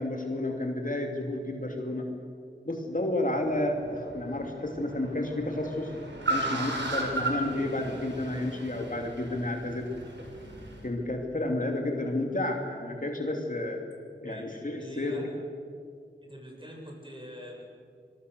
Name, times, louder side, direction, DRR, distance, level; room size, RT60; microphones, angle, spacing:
voice 1, 0.0-2.1 2.6-5.9 6.3-9.9 10.8-13.8 14.2-15.2, left 1 dB, 45° left, 2 dB, 2.8 m, -31 dB
Car, 3.5-10.8, right 2 dB, 75° right, 4.9 m, -36 dB
voice 2, 14.8-15.4 16.2-17.6, equal, 25° right, 0 dB, 7.4 m, -44 dB
25.0 x 22.0 x 6.9 m, 2.2 s
wide cardioid pair, 50°, 19 cm